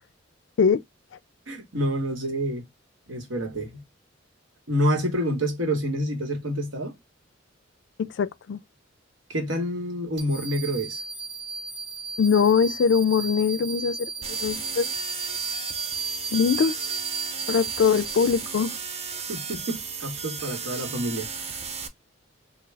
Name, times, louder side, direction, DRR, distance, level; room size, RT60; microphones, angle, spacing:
voice 1, 1.5-2.6 3.1-3.8 4.7-7.0 9.3-11.0 19.3-21.6, equal, 85° right, 1.2 m, -28 dB
voice 2, 8.0-8.6 12.2-14.9 16.3-16.7 17.5-18.7, left 6 dB, 65° left, 0.3 m, -22 dB
sound 1, 10.2-18.6, right 5 dB, 60° right, 0.9 m, -34 dB
sound 2, 14.2-21.9, right 6 dB, 30° right, 0.5 m, -35 dB
3.4 x 2.3 x 3.2 m
head